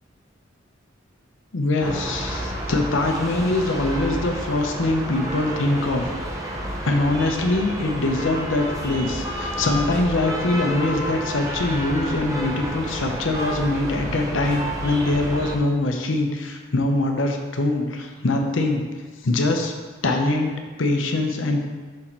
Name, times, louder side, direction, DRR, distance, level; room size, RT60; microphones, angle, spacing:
voice 1, 1.5-6.0 6.8-18.8 19.2-19.7 20.0-21.7, left 2 dB, 85° left, 3 dB, 0.8 m, -23 dB
sound 1, 1.8-15.6, right 1 dB, 15° right, 0.6 m, -30 dB
6.3 x 4.2 x 4.4 m, 1.4 s
head